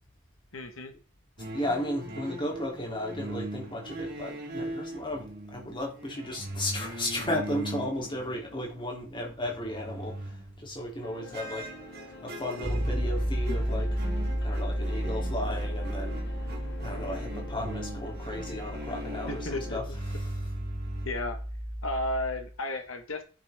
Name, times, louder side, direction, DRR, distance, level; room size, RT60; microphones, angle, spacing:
voice 1, 0.5-0.9 19.3-19.8 21.0-21.4 21.8-23.2, left 2 dB, 75° left, 1.5 m, -33 dB
sound 1, 1.4-8.9 9.2-10.8 11.3-21.1, right 1 dB, 50° right, 2.3 m, -40 dB
voice 2, 1.5-11.7 12.2-14.0 14.4-16.2 16.8-20.3, left 1 dB, 25° left, 3.1 m, -35 dB
sound 2, 11.0-19.8, left 1 dB, 55° left, 1.7 m, -46 dB
Bass guitar, 12.6-22.5, equal, 30° right, 4.2 m, -33 dB
10.0 x 9.5 x 3.6 m
head